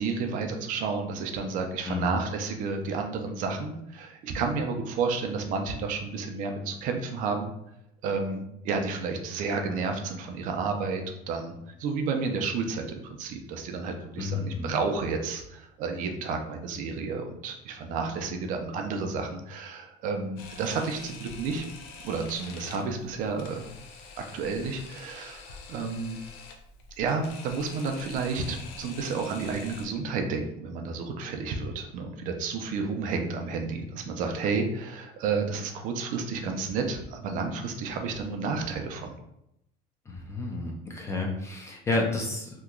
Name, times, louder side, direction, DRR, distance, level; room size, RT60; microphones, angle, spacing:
voice 1, 0.0-7.5 8.0-21.6 22.0-23.7 24.2-26.2 27.0-39.1, right 4 dB, 50° right, 4 dB, 0.5 m, -31 dB
voice 2, 14.2-14.8 40.1-42.5, left 3 dB, 15° left, 0 dB, 0.4 m, -31 dB
Camera, 20.4-29.9, left 5 dB, 65° left, 0.6 m, -46 dB
2.9 x 2.2 x 3.6 m, 0.79 s
cardioid pair, 165°, 18 cm